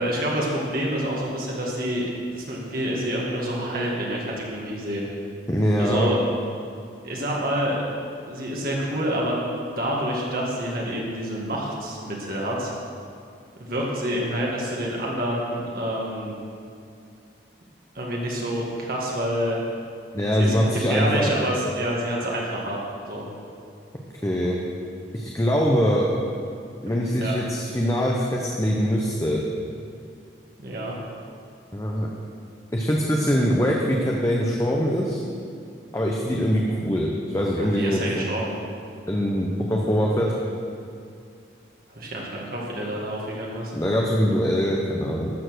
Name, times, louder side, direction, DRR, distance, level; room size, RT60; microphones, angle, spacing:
voice 1, 0.0-2.1 2.3-5.1 5.8-6.2 7.0-7.8 8.3-9.5 9.8-12.7 13.6-16.3 18.0-19.6 20.3-22.8 23.1-23.3 26.9-27.0 27.2-27.4 30.6-30.9 37.6-38.5 41.9-43.7, equal, 50° right, -3 dB, 1.9 m, -27 dB
voice 2, 5.5-6.2 20.1-21.3 24.2-24.6 25.1-26.1 26.8-29.4 31.7-32.1 32.7-35.2 35.9-38.2 39.1-40.3 43.7-45.3, equal, 15° left, -2 dB, 0.9 m, -23 dB
13.0 x 7.3 x 6.3 m, 2.4 s
head